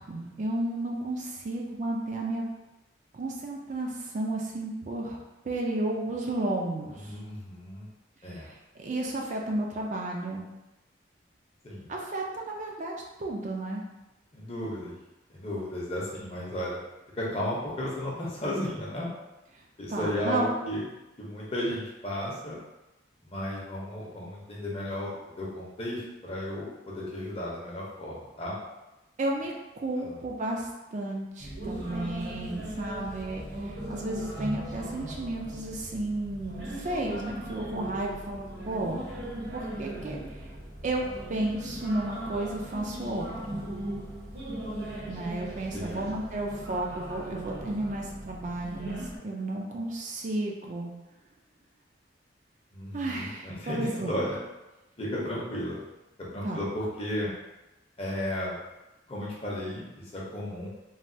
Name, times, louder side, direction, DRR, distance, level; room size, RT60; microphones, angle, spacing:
voice 1, 0.1-2.4 3.1-5.2 5.4-7.2 8.8-10.5 11.9-13.8 19.9-20.5 29.2-39.0 39.5-40.2 40.8-43.6 45.1-50.9 52.9-54.1 56.4-56.6, right 2 dB, 40° right, 0 dB, 0.3 m, -33 dB
voice 2, 6.9-7.9 8.2-8.5 11.6-11.9 14.3-15.0 15.3-16.8 17.1-19.1 19.8-20.8 21.2-22.6 23.2-25.1 25.4-28.6 30.0-30.2 45.7-46.1 52.7-54.4 55.0-55.8 56.2-57.3 58.0-58.5 59.1-60.7, left 1 dB, 30° left, -5 dB, 0.7 m, -34 dB
sound 1, 31.4-49.2, right 1 dB, 70° right, 0.8 m, -38 dB
3.2 x 2.2 x 2.6 m, 0.99 s
head